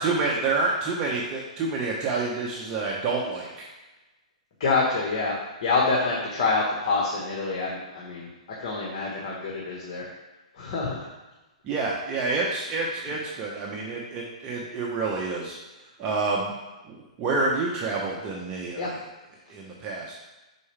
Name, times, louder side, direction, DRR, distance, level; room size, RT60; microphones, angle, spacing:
voice 1, 0.0-3.7 11.6-15.6 16.0-16.5 16.8-18.9 19.5-20.1, right 3 dB, 25° right, -3 dB, 0.9 m, -28 dB
voice 2, 4.6-8.3 8.6-10.1 10.5-11.1 18.8-18.9, left 3 dB, 50° left, -4 dB, 1.3 m, -26 dB
6.8 x 4.8 x 3.3 m, 1.1 s
hypercardioid pair, 145°, 4 cm